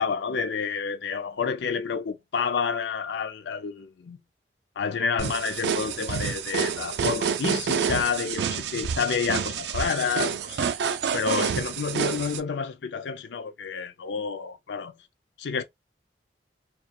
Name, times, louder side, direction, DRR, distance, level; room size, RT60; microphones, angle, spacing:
voice 1, 0.0-4.2 4.8-10.7 11.1-14.9 15.4-15.6, left 6 dB, 85° left, 0.4 m, -29 dB
sound 1, 5.2-12.4, right 7 dB, 75° right, 0.3 m, -28 dB
2.8 x 2.3 x 2.2 m
head